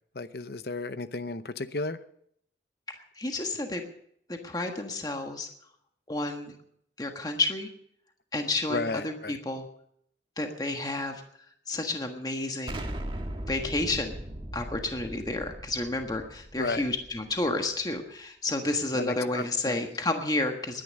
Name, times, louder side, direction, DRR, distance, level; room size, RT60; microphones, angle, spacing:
voice 1, 0.1-2.0 8.7-9.4 16.6-16.8 18.9-19.8, left 3 dB, 60° left, 13 dB, 0.8 m, -33 dB
voice 2, 3.0-3.8 4.3-5.5 6.1-6.5 7.0-7.7 8.3-9.7 10.4-11.2 11.7-12.8 13.5-14.2 14.5-20.8, left 2 dB, 20° left, 4 dB, 1.4 m, -31 dB
Explosion, 12.7-17.5, right 1 dB, 30° right, 1.6 m, -39 dB
20.0 x 10.5 x 6.5 m, 0.69 s
head